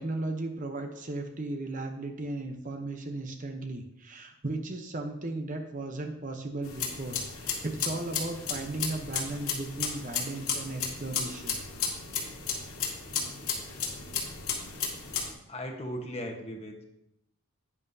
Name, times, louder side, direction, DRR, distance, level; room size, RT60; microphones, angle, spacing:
voice 1, 0.0-11.6, right 2 dB, 35° right, 5 dB, 0.8 m, -36 dB
sound 1, 6.6-15.3, left 6 dB, 75° left, 2.1 m, -34 dB
voice 2, 15.5-16.8, equal, 25° left, 2 dB, 1.1 m, -37 dB
10.5 x 9.7 x 2.8 m, 0.82 s
head